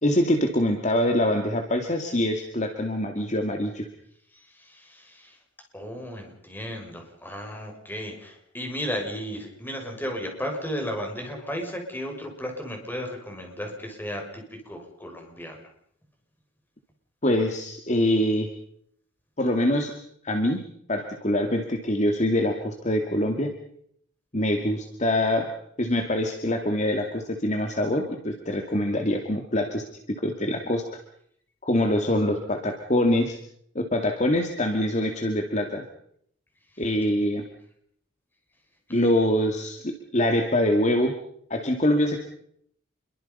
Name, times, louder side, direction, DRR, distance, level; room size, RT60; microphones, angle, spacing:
voice 1, 0.0-3.9 17.2-18.5 19.4-19.9 20.2-20.6 20.9-23.5 24.3-25.5 25.8-30.9 31.6-33.4 33.7-35.9 36.8-37.4 38.9-41.1 41.5-42.2, left 1 dB, 35° left, 4 dB, 2.3 m, -24 dB
voice 2, 4.3-5.4 5.7-15.6 38.9-39.0, equal, 10° left, 2 dB, 6.3 m, -34 dB
28.0 x 23.5 x 5.5 m, 0.67 s
head